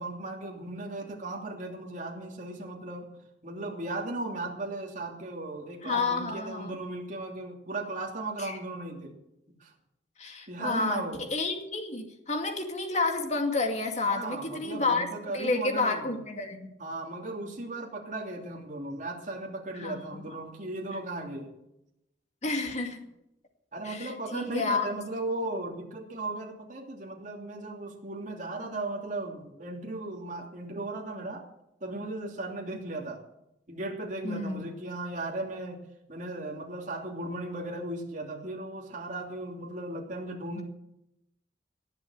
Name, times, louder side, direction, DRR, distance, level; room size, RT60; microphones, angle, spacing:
voice 1, 0.0-3.1 3.4-9.1 9.6-9.7 10.5-11.2 14.1-16.2 16.8-21.6 23.7-31.5 31.8-33.2 33.7-35.8 36.1-40.6, right 2 dB, 45° right, 0 dB, 3.1 m, -36 dB
voice 2, 5.8-6.7 8.4-8.5 10.2-11.0 11.3-15.1 15.3-16.6 19.8-20.2 22.4-23.0 23.8-24.8 34.2-34.6 40.6-40.7, left 3 dB, 40° left, 3 dB, 2.3 m, -30 dB
19.0 x 7.5 x 8.0 m, 0.85 s
head